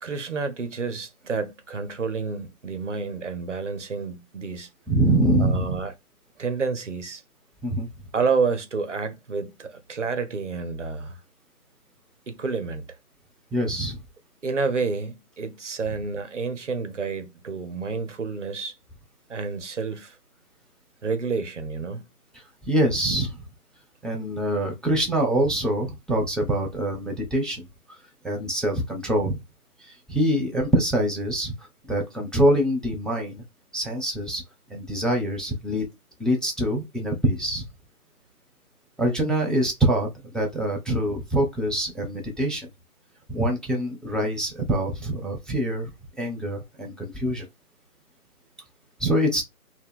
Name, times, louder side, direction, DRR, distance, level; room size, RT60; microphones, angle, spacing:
voice 1, 0.0-4.7 5.4-5.9 6.4-7.2 8.1-11.2 12.3-12.9 14.4-18.7 19.3-20.2 21.0-22.0, right 4 dB, 55° right, 0.5 m, -29 dB
voice 2, 4.9-5.8 7.6-7.9 13.5-14.0 22.3-23.4 24.0-28.0 28.2-29.4 29.8-31.5 31.9-33.4 33.7-34.4 34.7-35.8 36.2-37.6 39.0-42.7 43.3-45.9 46.2-47.5 49.0-49.4, right 1 dB, ahead, 0.4 m, -25 dB
2.4 x 2.1 x 3.6 m
figure-of-eight pair, 170°, 46 cm